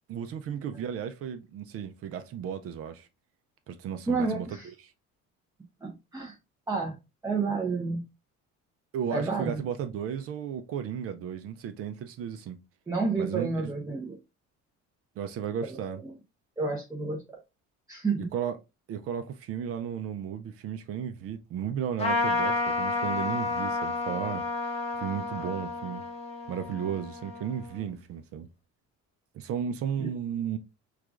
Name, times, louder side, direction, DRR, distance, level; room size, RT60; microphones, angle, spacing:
voice 1, 0.1-3.1 3.7-4.6 4.8-4.9 8.9-12.6 13.2-13.5 15.2-16.0 18.3-18.6 18.9-26.0 26.5-28.5 29.3-30.6, right 8 dB, 50° right, 0.5 m, -34 dB
voice 2, 4.1-4.7 5.8-6.4 6.7-7.0 7.2-8.0 9.1-9.6 12.9-14.2 16.0-16.1 16.6-17.4 17.9-18.3 30.0-30.1, right 4 dB, 10° right, 0.7 m, -30 dB
Trumpet, 22.0-27.8, left 3 dB, 20° left, 0.8 m, -31 dB
4.6 x 2.3 x 2.4 m
cardioid pair, 145°, 29 cm